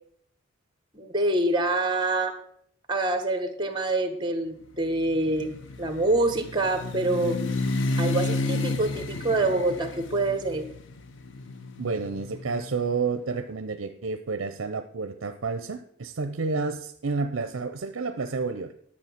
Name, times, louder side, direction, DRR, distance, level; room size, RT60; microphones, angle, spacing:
voice 1, 0.9-2.4 2.9-7.4 8.0-10.7, right 2 dB, 20° right, 8 dB, 1.3 m, -26 dB
sound 1, 4.9-12.9, left 2 dB, 60° left, 0.7 m, -31 dB
voice 2, 11.8-18.7, right 4 dB, 70° right, 9 dB, 0.6 m, -30 dB
11.0 x 7.1 x 5.8 m, 0.66 s
head